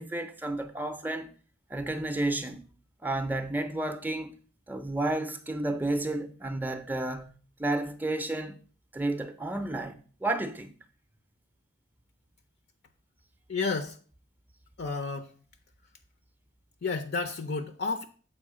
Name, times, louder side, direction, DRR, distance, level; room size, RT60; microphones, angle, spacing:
voice 1, 0.0-1.3 1.7-2.7 3.0-4.4 4.7-7.3 7.6-8.6 8.9-10.7, right 2 dB, 10° right, 0.5 m, -31 dB
voice 2, 13.5-14.0 14.8-15.3 16.8-18.0, left 4 dB, 55° left, 0.5 m, -31 dB
7.5 x 4.7 x 4.8 m
head